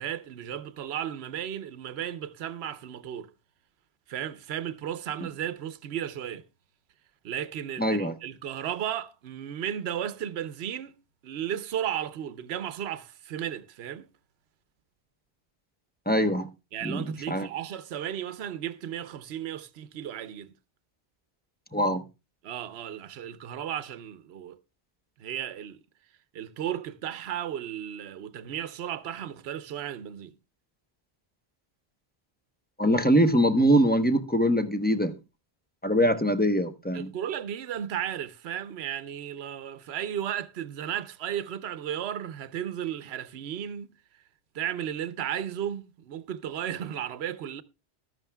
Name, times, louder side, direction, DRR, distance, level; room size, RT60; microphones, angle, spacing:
voice 1, 0.0-3.3 4.1-6.4 7.2-11.0 11.2-14.0 16.7-20.5 22.4-24.6 25.2-25.8 26.3-30.3 36.9-43.9 44.5-47.6, right 10 dB, 75° right, 1.0 m, -34 dB
voice 2, 7.8-8.1 16.1-16.5 16.8-17.5 21.7-22.0 32.8-35.1 35.8-37.1, equal, 10° left, 0.8 m, -23 dB
14.5 x 12.5 x 2.2 m
omnidirectional pair, 1.1 m